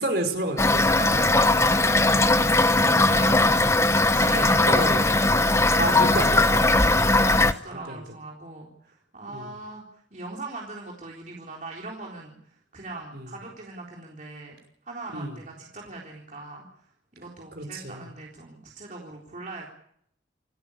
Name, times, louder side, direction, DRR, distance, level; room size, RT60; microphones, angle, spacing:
voice 1, 0.0-0.9 4.3-5.0 5.8-6.6 6.9-7.0 7.9-8.0 9.3-9.5 13.1-13.3 15.1-15.4 17.6-18.1, right 1 dB, 55° right, 5 dB, 5.5 m, -30 dB
Toilet flush / Fill (with liquid), 0.6-7.5, left 2 dB, 15° left, 0.9 m, -19 dB
voice 2, 1.0-1.8 2.6-3.6 3.9-4.8 5.2-5.7 6.5-14.6 14.8-19.7, right 3 dB, 40° right, -2 dB, 3.8 m, -40 dB
28.0 x 13.5 x 9.9 m, 0.69 s
head